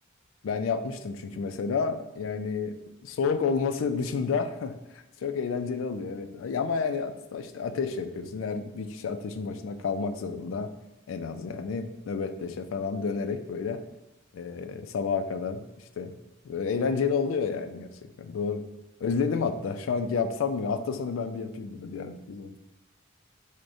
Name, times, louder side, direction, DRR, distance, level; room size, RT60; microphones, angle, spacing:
voice 1, 0.4-2.8 3.0-10.7 11.1-13.8 14.3-15.7 16.0-16.1 16.4-18.6 19.0-22.6, left 5 dB, 85° left, 9 dB, 0.3 m, -30 dB
6.0 x 2.1 x 2.6 m, 0.91 s
head